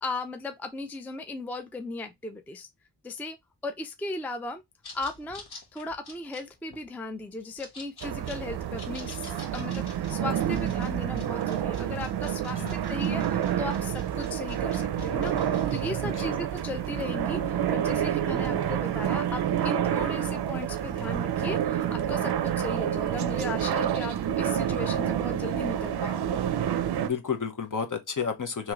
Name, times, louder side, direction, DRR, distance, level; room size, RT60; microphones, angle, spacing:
voice 1, 0.0-2.7 3.0-3.4 3.6-4.6 4.9-5.5 5.7-15.3 15.7-26.3, left 2 dB, 5° left, 0.4 m, -37 dB
sound 1, 4.8-15.9, left 2 dB, 65° left, 1.3 m, -48 dB
sound 2, 8.0-27.1, right 10 dB, 65° right, 0.5 m, -28 dB
voice 2, 16.0-16.4 27.0-28.7, left 6 dB, 45° left, 0.9 m, -31 dB
3.0 x 3.0 x 3.7 m
wide cardioid pair, 75°, 43 cm